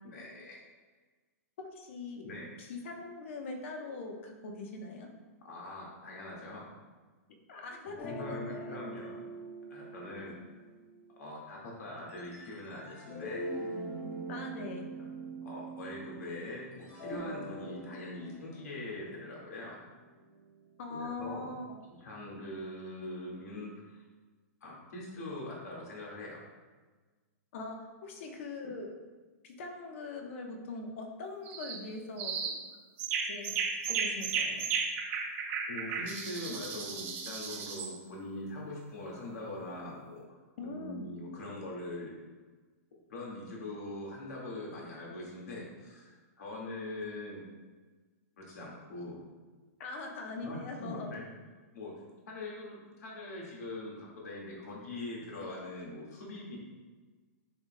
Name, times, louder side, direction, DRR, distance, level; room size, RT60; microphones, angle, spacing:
voice 1, 0.0-0.6 2.2-2.5 5.4-6.6 8.2-9.2 9.7-10.3 11.2-13.5 15.0-15.1 15.4-19.8 20.9-21.5 22.0-24.0 24.6-26.4 28.6-28.8 35.7-40.2 40.6-42.1 43.1-47.4 48.4-49.2 50.4-51.2 51.7-51.9 52.3-56.6, left 2 dB, 75° left, -3 dB, 1.9 m, -42 dB
voice 2, 1.6-2.3 2.6-5.1 7.5-8.8 14.3-14.9 20.8-21.8 27.5-28.9 29.4-32.5 33.2-33.5 33.9-34.7 40.6-41.1 49.8-51.1, left 3 dB, 50° left, 2 dB, 1.0 m, -42 dB
sound 1, 8.0-11.1 12.1-16.4 16.7-20.9, right 2 dB, 25° left, 1.3 m, -43 dB
sound 2, 31.5-31.8 32.2-32.6 33.0-37.9, right 5 dB, 25° right, 0.8 m, -34 dB
9.7 x 4.9 x 2.2 m, 1.3 s
hypercardioid pair, 165°, 9 cm